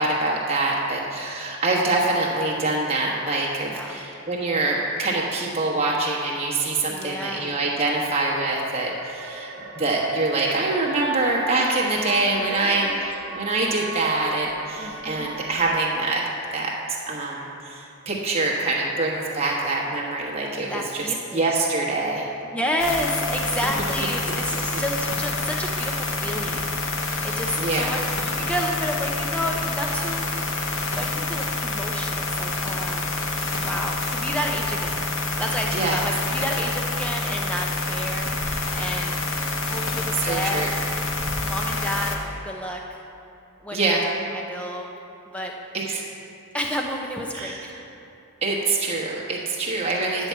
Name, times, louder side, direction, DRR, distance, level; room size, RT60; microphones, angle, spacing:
voice 1, 0.0-16.2 16.5-22.3 24.3-24.4 27.6-28.0 35.7-36.0 40.1-40.8 43.7-44.0 45.7-46.0 47.3-47.6 48.4-50.3, right 2 dB, 25° right, -3 dB, 1.2 m, -25 dB
voice 2, 3.7-4.1 6.9-7.6 12.4-13.0 14.8-15.3 20.6-21.5 22.5-30.3 31.0-33.1 33.6-35.1 35.4-40.8 41.4-43.0 43.6-44.0 44.2-44.9 45.3-45.5 46.5-47.8, equal, 5° left, 0 dB, 0.7 m, -31 dB
sound 1, 7.9-15.8, right 5 dB, 55° right, 1.0 m, -39 dB
sound 2, 22.8-42.2, left 2 dB, 55° left, 0.9 m, -27 dB
9.5 x 4.5 x 7.3 m, 2.8 s
head